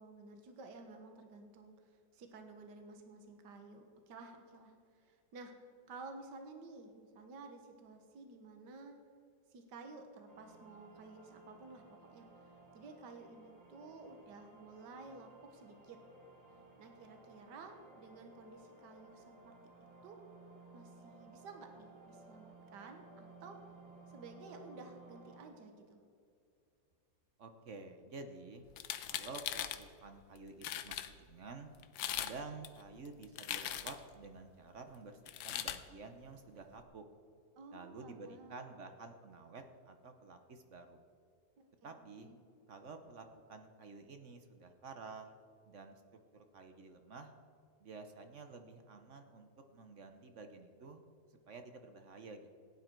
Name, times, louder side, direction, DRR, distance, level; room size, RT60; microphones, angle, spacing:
voice 1, 0.0-5.5 5.9-9.0 9.5-12.3 12.7-16.0 16.8-19.5 20.0-20.2 20.7-23.6 24.1-26.0 37.6-38.7 41.6-41.9 42.2-42.4, right 3 dB, 65° right, 5 dB, 1.8 m, -53 dB
sound 1, 10.3-25.4, right 3 dB, 80° right, 3.1 m, -59 dB
voice 2, 27.4-28.6 29.1-31.7 32.1-35.2 35.4-37.0 37.7-41.0 41.8-42.3 42.7-45.3 45.7-46.0 46.3-47.3 47.8-51.0 51.5-52.5, right 3 dB, 50° right, 7 dB, 1.0 m, -51 dB
sound 2, 28.7-29.8 30.4-30.5 30.6-31.1 31.8-32.4 32.6-34.1 35.3-35.8, left 11 dB, 90° left, 1.4 m, -40 dB
16.0 x 10.0 x 4.5 m, 2.4 s
omnidirectional pair, 2.0 m